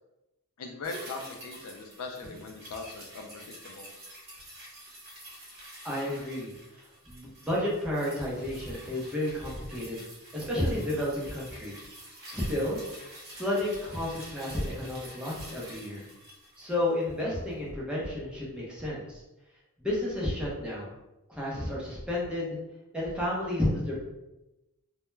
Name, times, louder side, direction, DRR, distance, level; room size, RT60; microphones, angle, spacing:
voice 1, 0.6-3.9, left 3 dB, 75° left, 3 dB, 0.4 m, -40 dB
sound 1, 0.8-17.3 17.6-17.7, right 1 dB, 45° right, 0.8 m, -48 dB
voice 2, 5.8-6.5 7.1-10.0 10.3-11.7 12.3-12.8 13.3-16.1 16.6-19.2 19.8-20.9 21.3-22.6 22.9-24.0, left 1 dB, 5° right, -6 dB, 0.6 m, -31 dB
2.2 x 2.1 x 3.1 m, 0.96 s
head